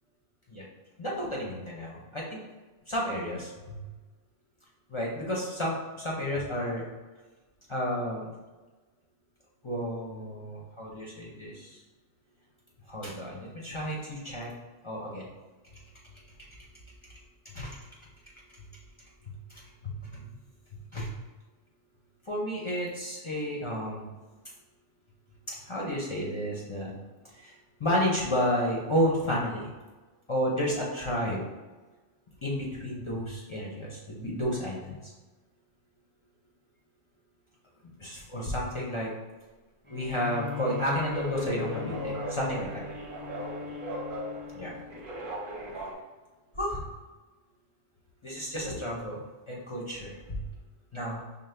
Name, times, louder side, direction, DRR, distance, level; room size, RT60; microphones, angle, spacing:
voice 1, 1.0-2.4 2.9-3.8 4.9-6.9 7.7-8.3 9.6-11.8 12.9-14.5 14.8-15.3 17.4-17.8 19.3-20.3 20.9-21.1 22.3-24.1 25.5-26.9 27.3-29.7 30.3-31.4 32.4-35.1 38.0-39.1 39.9-42.7 44.6-44.7 46.6-46.8 48.2-50.4 50.9-51.2, equal, 40° left, -4 dB, 0.4 m, -32 dB
Bowed string instrument, 39.8-45.3, left 7 dB, 10° right, 0.6 m, -39 dB
sound 1, 40.9-45.9, right 1 dB, 50° right, 0.7 m, -38 dB
5.2 x 2.1 x 3.2 m, 1.2 s
omnidirectional pair, 1.2 m